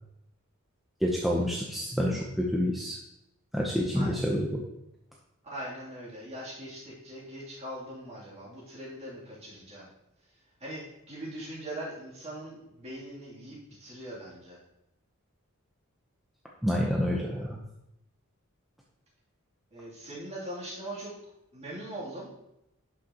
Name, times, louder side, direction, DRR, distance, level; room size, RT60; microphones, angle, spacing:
voice 1, 1.0-3.0 3.5-4.6 16.6-17.6, equal, ahead, -3 dB, 0.8 m, -28 dB
voice 2, 5.4-9.9 10.6-14.6 19.7-21.1 21.5-22.3, right 1 dB, 30° right, -7 dB, 3.1 m, -41 dB
11.5 x 6.3 x 3.0 m, 0.86 s
head